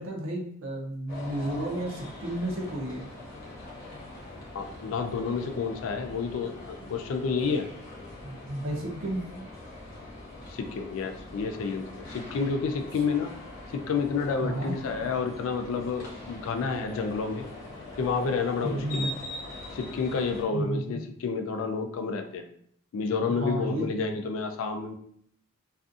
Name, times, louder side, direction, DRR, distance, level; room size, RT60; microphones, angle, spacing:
voice 1, 0.0-3.1 8.2-9.2 14.4-14.7 18.6-19.1 20.5-21.0 23.3-23.8, right 1 dB, 65° right, 0 dB, 0.6 m, -32 dB
sound 1, 1.1-20.4, left 2 dB, 45° left, 0.7 m, -43 dB
voice 2, 4.5-7.7 10.5-13.3 13.7-17.5 18.0-19.1 19.7-22.4 22.9-24.9, left 5 dB, 65° left, 6 dB, 0.3 m, -30 dB
2.4 x 2.3 x 2.5 m, 0.63 s
head